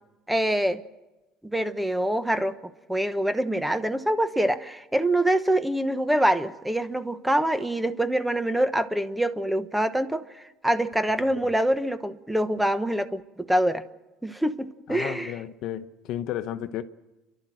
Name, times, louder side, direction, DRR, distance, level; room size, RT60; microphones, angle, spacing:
voice 1, 0.3-0.8 1.4-2.5 2.9-13.8 14.2-15.3, right 1 dB, 5° right, 1.0 m, -25 dB
voice 2, 14.9-16.8, left 11 dB, 65° left, 0.9 m, -33 dB
30.0 x 12.0 x 7.7 m
supercardioid pair, 110°, 0 cm